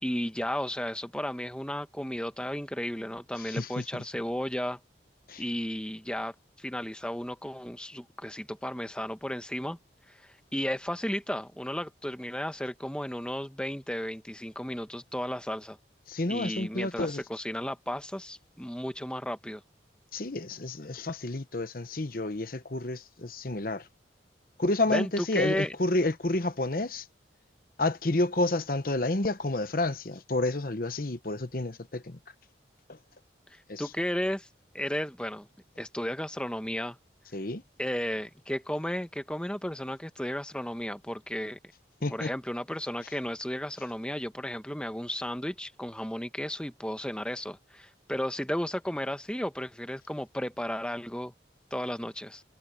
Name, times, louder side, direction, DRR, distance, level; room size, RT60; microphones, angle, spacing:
voice 1, 0.0-4.8 5.4-9.8 10.1-15.8 16.3-19.6 24.9-25.7 33.5-34.5 34.7-35.5 35.8-37.0 37.8-41.6 42.1-51.3 51.7-52.4, equal, 5° left, 1.1 m, -34 dB
voice 2, 3.4-4.0 5.3-5.4 16.1-17.2 20.1-23.9 24.6-27.1 27.8-32.2 32.9-33.0 33.7-33.8 37.3-37.6 42.0-42.3, left 2 dB, 50° left, 1.0 m, -30 dB
head